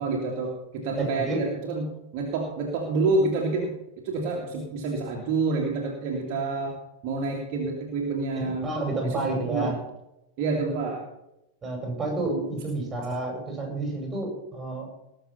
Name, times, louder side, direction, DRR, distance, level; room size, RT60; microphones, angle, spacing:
voice 1, 0.0-3.7 4.0-8.7 9.0-9.7 10.4-11.0, right 3 dB, 45° right, -1 dB, 2.3 m, -28 dB
voice 2, 1.0-1.4 8.3-9.8 11.6-14.9, right 2 dB, 15° right, 1 dB, 6.0 m, -30 dB
19.5 x 6.8 x 5.7 m, 0.88 s
figure-of-eight pair, 90°, 0 cm